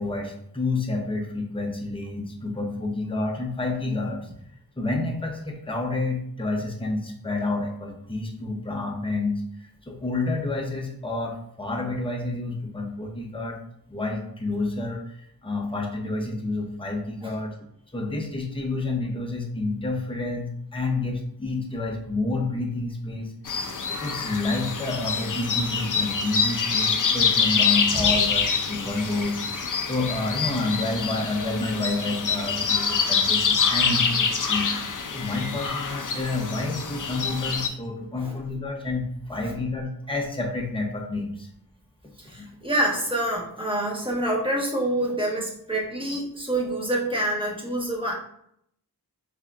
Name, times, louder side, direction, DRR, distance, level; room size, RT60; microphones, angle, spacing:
voice 1, 0.0-4.3 4.8-13.6 13.9-17.5 17.9-23.3 23.6-29.4 29.8-34.7 35.1-41.5 42.4-42.5, left 2 dB, 15° left, 1 dB, 0.8 m, -29 dB
sound 1, 23.5-37.7, left 5 dB, 50° left, 0.5 m, -25 dB
voice 2, 42.2-48.1, right 1 dB, 10° right, -2 dB, 1.2 m, -27 dB
4.2 x 3.4 x 2.4 m, 0.70 s
wide cardioid pair, 45°, 42 cm